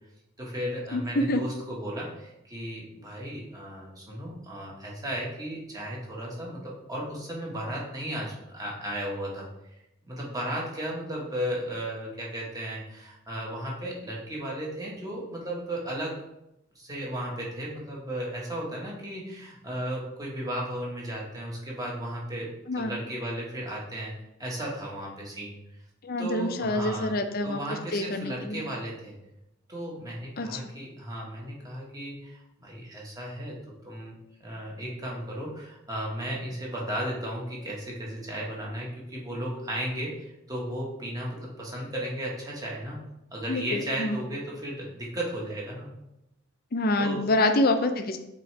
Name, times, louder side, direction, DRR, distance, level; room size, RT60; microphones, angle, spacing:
voice 1, 0.4-9.5 10.0-16.2 16.7-24.1 24.4-25.6 26.2-27.1 27.4-29.1 29.7-33.6 33.8-43.0 43.3-45.9 47.0-47.2, right 1 dB, 20° right, -3 dB, 1.4 m, -35 dB
voice 2, 0.9-1.4 22.7-22.9 26.0-27.6 27.9-28.6 30.4-30.6 43.5-44.2 46.7-48.2, left 2 dB, 45° left, 7 dB, 0.5 m, -26 dB
7.9 x 3.8 x 3.2 m, 0.87 s
head